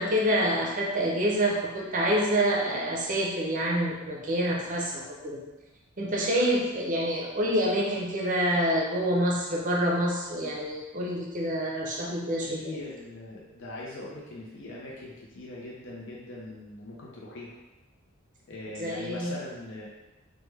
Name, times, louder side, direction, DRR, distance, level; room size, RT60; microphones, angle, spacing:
voice 1, 0.0-5.4 6.0-12.8 18.8-19.3, equal, 40° right, -2 dB, 0.6 m, -27 dB
voice 2, 12.4-17.5 18.5-19.9, left 2 dB, 65° left, -4 dB, 0.6 m, -41 dB
3.2 x 2.2 x 3.2 m, 1.1 s
head